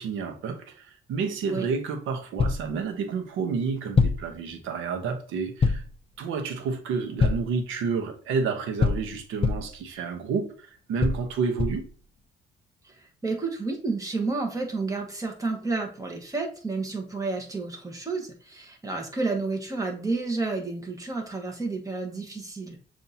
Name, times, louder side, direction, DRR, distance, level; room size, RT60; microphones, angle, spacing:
voice 1, 0.0-5.8 6.2-11.9, right 5 dB, 90° right, 0.9 m, -30 dB
sound 1, 2.4-2.7 4.0-4.3 5.6-6.0 7.2-7.6 8.8-9.8 11.0-11.9, left 4 dB, 30° left, 0.4 m, -24 dB
voice 2, 12.9-22.8, right 3 dB, 15° right, 1.2 m, -31 dB
7.1 x 2.7 x 2.7 m
cardioid pair, 90°, 20 cm